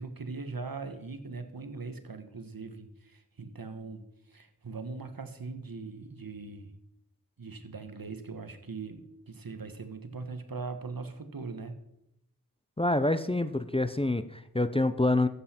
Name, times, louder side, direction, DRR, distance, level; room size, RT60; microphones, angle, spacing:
voice 1, 0.0-6.7 7.4-11.8, right 4 dB, 65° right, 8 dB, 1.3 m, -40 dB
voice 2, 12.8-15.3, left 2 dB, 15° left, 11 dB, 0.6 m, -27 dB
13.5 x 8.1 x 4.3 m, 0.81 s
wide cardioid pair, 45°, 37 cm